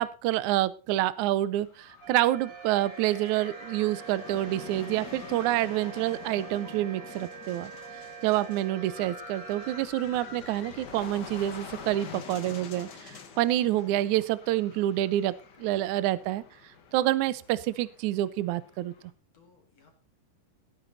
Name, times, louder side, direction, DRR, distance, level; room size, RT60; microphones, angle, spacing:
voice 1, 0.0-7.7 8.2-15.3 15.6-16.4 16.9-18.9, right 14 dB, 85° right, 17 dB, 1.7 m, -27 dB
sound 1, 1.4-19.1, left 6 dB, 65° left, 1.0 m, -46 dB
sound 2, 2.0-9.9, right 6 dB, 65° right, 3.9 m, -45 dB
voice 2, 12.5-13.1 15.6-15.9 19.3-19.9, left 5 dB, 50° left, 4 dB, 2.8 m, -60 dB
17.0 x 9.3 x 4.1 m, 0.33 s
omnidirectional pair, 4.4 m